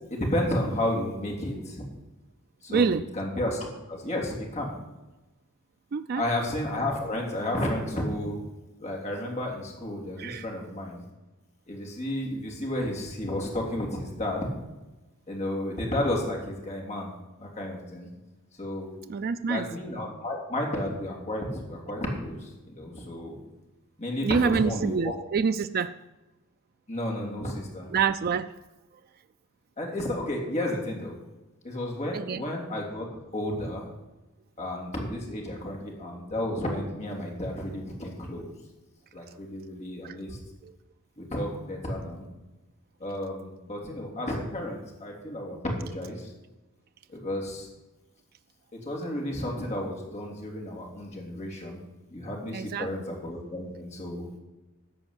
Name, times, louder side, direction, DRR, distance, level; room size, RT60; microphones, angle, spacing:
voice 1, 0.1-1.8 2.6-4.7 6.1-8.3 8.8-11.0 11.7-14.5 15.3-17.1 17.4-18.1 18.6-18.9 19.5-23.4 24.0-25.1 26.9-27.9 29.8-31.2 31.6-33.0 33.3-33.9 34.6-38.5 39.1-40.4 41.2-42.3 43.0-46.3 47.1-47.7 48.7-51.8 52.1-54.3, left 1 dB, 30° left, 0 dB, 3.1 m, -32 dB
voice 2, 2.7-3.1 5.9-6.2 10.2-10.4 19.1-19.7 24.2-25.9 27.9-28.5 32.1-32.4 40.0-40.2 40.6-40.7 52.5-52.9, right 5 dB, 45° right, 11 dB, 0.4 m, -26 dB
14.0 x 5.3 x 8.8 m, 1.1 s
head